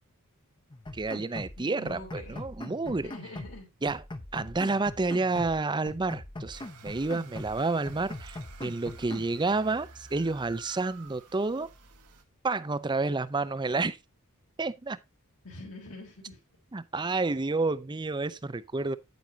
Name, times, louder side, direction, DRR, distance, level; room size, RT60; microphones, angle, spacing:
sound 1, 0.7-1.6 1.9-3.6 3.9-5.6 5.9-7.6 7.9-9.3, left 1 dB, 20° left, 0.8 m, -42 dB
voice 1, 0.9-3.1 3.8-4.0 4.3-11.7 12.4-14.0 14.6-15.0 16.7-19.0, right 3 dB, 20° right, 0.5 m, -30 dB
voice 2, 1.6-2.4 2.8-3.7 15.4-16.4, left 2 dB, 75° left, 3.1 m, -45 dB
sound 2, 6.5-12.2, right 4 dB, 90° right, 1.5 m, -52 dB
9.3 x 8.9 x 2.7 m
head